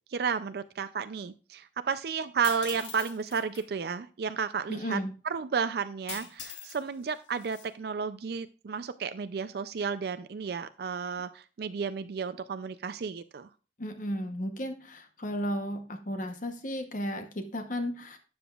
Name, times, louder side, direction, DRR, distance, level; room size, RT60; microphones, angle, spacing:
voice 1, 0.1-5.0 5.2-13.5, right 6 dB, 60° right, 12 dB, 0.4 m, -32 dB
sound 1, 2.4-3.6 6.1-6.8 7.1-7.7, left 7 dB, 90° left, 1.6 m, -42 dB
voice 2, 4.7-5.1 13.8-18.2, equal, 45° left, 6 dB, 0.9 m, -34 dB
12.0 x 7.8 x 2.4 m, 0.35 s
head